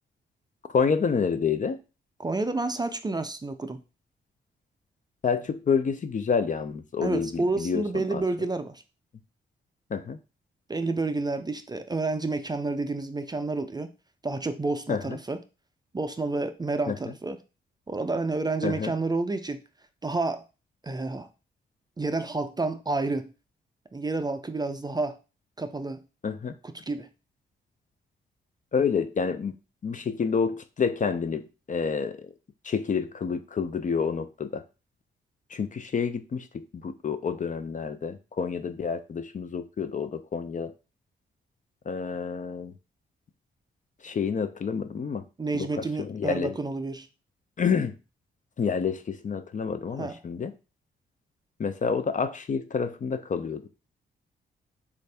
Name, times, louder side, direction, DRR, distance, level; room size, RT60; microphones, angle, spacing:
voice 1, 0.7-1.8 5.2-8.2 9.9-10.2 14.9-15.2 16.9-17.0 18.6-18.9 26.2-26.5 28.7-29.5 29.8-32.3 32.6-34.6 35.5-40.7 41.9-42.7 44.0-45.2 45.5-46.5 47.6-48.0 48.6-50.5 51.6-53.7, left 6 dB, 40° left, 0.4 m, -28 dB
voice 2, 2.2-3.8 7.0-8.8 10.7-13.9 14.2-15.4 15.9-17.4 17.9-19.6 20.0-20.4 20.8-21.3 22.0-23.3 23.9-25.2 25.6-26.0 26.9-27.1 45.4-47.1 50.0-50.2, right 3 dB, 20° right, 0.4 m, -29 dB
3.4 x 2.5 x 3.3 m
supercardioid pair, 45°, 21 cm